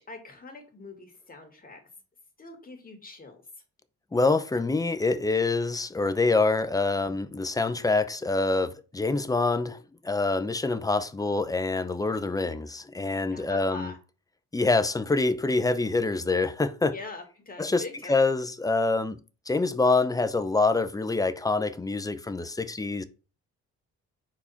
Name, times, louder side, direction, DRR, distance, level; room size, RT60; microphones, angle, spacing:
voice 1, 0.0-1.8 2.4-3.4 13.3-14.0 16.9-18.2, left 2 dB, 30° left, 2.2 m, -43 dB
voice 2, 4.1-9.8 10.0-13.9 14.5-16.9 17.6-19.2 19.5-23.0, left 3 dB, 10° left, 0.6 m, -26 dB
4.7 x 4.2 x 5.7 m
cardioid pair, 90°, 30 cm